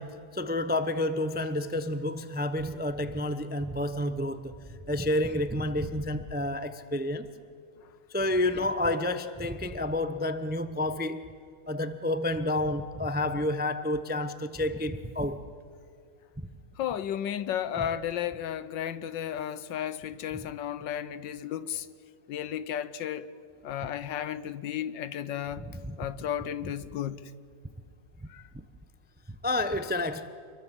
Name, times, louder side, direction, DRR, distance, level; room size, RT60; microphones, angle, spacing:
voice 1, 0.0-4.5 4.9-7.3 8.1-11.3 11.7-15.4 20.3-20.4 25.7-26.0 29.4-30.3, left 1 dB, 10° right, 0.4 m, -30 dB
voice 2, 16.8-21.9 22.3-23.3 23.6-25.6 26.0-27.2 28.3-28.4, left 10 dB, 80° left, 1.6 m, -33 dB
28.0 x 22.0 x 7.6 m
omnidirectional pair, 2.0 m